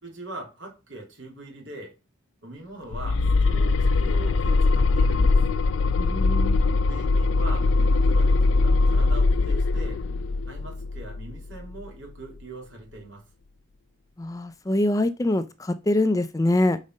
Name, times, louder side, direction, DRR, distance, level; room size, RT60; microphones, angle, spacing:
voice 1, 0.0-1.9 2.4-5.4 6.9-10.0 10.5-13.2, right 2 dB, 75° right, 2.8 m, -41 dB
sound 1, 2.9-11.8, left 3 dB, 80° left, 0.4 m, -21 dB
voice 2, 6.0-6.6 14.2-16.8, left 1 dB, 15° left, 0.4 m, -24 dB
5.1 x 4.0 x 5.4 m
head